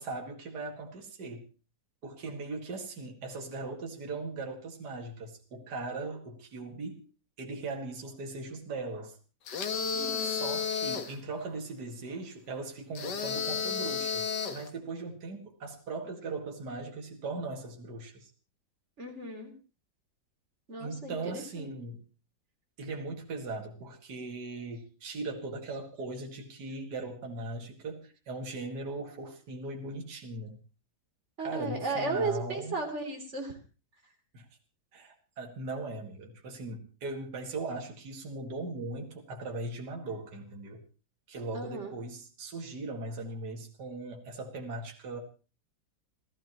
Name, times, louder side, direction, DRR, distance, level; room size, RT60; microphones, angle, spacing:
voice 1, 0.0-1.5 2.0-7.1 7.4-9.2 10.2-18.3 20.8-22.0 22.8-30.6 31.4-32.8 34.3-34.5 34.9-40.8 41.3-45.2, right 3 dB, 55° right, 2 dB, 2.6 m, -39 dB
sound 1, 9.5-11.2 12.9-14.7, left 6 dB, 60° left, 2.0 m, -32 dB
voice 2, 9.9-10.4 19.0-19.5 20.7-21.7 31.4-33.6 41.5-41.9, right 3 dB, 35° right, 2 dB, 3.7 m, -35 dB
28.5 x 15.0 x 3.1 m, 0.34 s
omnidirectional pair, 2.1 m